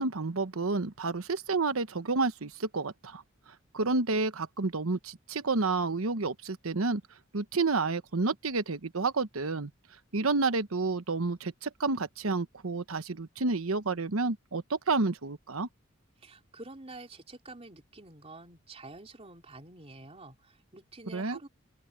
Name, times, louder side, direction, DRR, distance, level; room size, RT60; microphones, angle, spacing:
voice 1, 0.0-3.2 3.7-7.0 7.3-9.7 10.1-15.7 21.1-21.4, right 3 dB, 90° right, 1.1 m, -30 dB
voice 2, 16.2-21.5, right 2 dB, 30° right, 3.8 m, -48 dB
open air
head